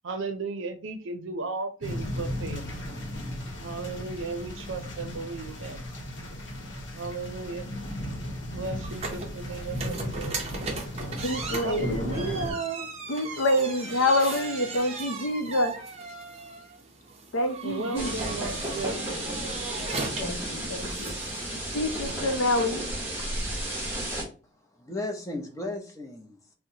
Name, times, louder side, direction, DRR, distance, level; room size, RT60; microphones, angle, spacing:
voice 1, 0.0-2.7 3.6-5.9 6.9-7.7 8.5-10.5 11.6-12.9 14.6-14.7 17.6-19.5, right 3 dB, 80° right, 0.5 m, -35 dB
sound 1, 1.8-12.5, left 1 dB, 65° left, 0.9 m, -35 dB
sound 2, 8.8-22.2, right 3 dB, 30° right, 0.6 m, -38 dB
voice 2, 11.2-12.3 13.1-15.8 17.3-18.3 19.9-21.1 21.7-22.9, left 1 dB, 85° left, 0.6 m, -27 dB
sound 3, 17.9-24.2, right 1 dB, 10° right, 0.9 m, -33 dB
voice 3, 24.4-26.5, left 2 dB, 15° left, 0.6 m, -36 dB
4.3 x 2.1 x 2.7 m
head